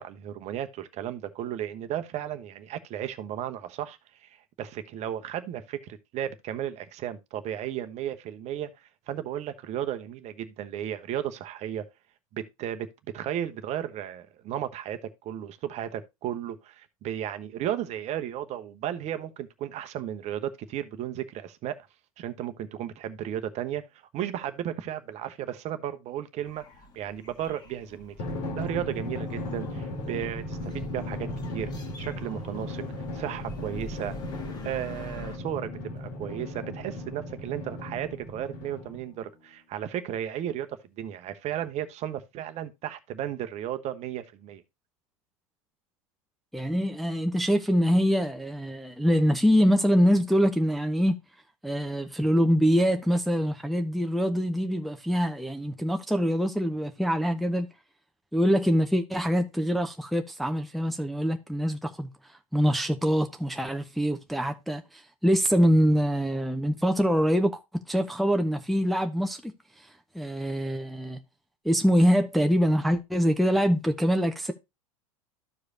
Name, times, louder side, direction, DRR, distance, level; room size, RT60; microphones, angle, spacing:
voice 1, 0.0-11.8 12.3-12.9 13.1-21.7 22.2-23.8 24.1-26.6 26.9-28.3 28.6-31.7 32.0-32.8 33.1-34.1 34.6-40.7 41.0-44.6, right 11 dB, 40° right, 0.9 m, -34 dB
sound 1, 26.4-35.4, left 1 dB, 20° left, 1.6 m, -46 dB
Drum, 28.2-39.2, left 1 dB, 50° left, 2.8 m, -36 dB
voice 2, 46.5-51.2 51.6-57.7 58.3-62.1 62.5-67.6 67.9-69.5 70.1-71.2 71.6-74.5, equal, ahead, 0.7 m, -24 dB
13.5 x 4.9 x 2.6 m
figure-of-eight pair, 90°, 18 cm